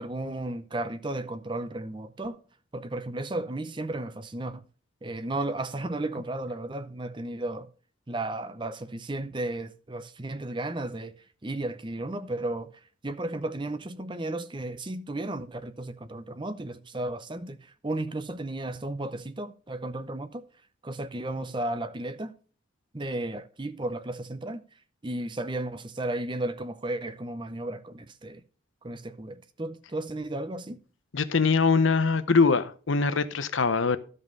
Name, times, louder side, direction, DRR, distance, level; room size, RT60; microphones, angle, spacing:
voice 1, 0.0-2.4 2.7-4.6 5.0-7.7 8.1-11.1 11.4-12.7 13.0-17.6 17.8-20.4 20.8-22.3 22.9-24.6 25.0-28.4 28.8-30.8, right 2 dB, 25° right, 0.7 m, -34 dB
voice 2, 31.1-34.0, left 4 dB, 80° left, 0.9 m, -23 dB
13.0 x 5.5 x 5.3 m
head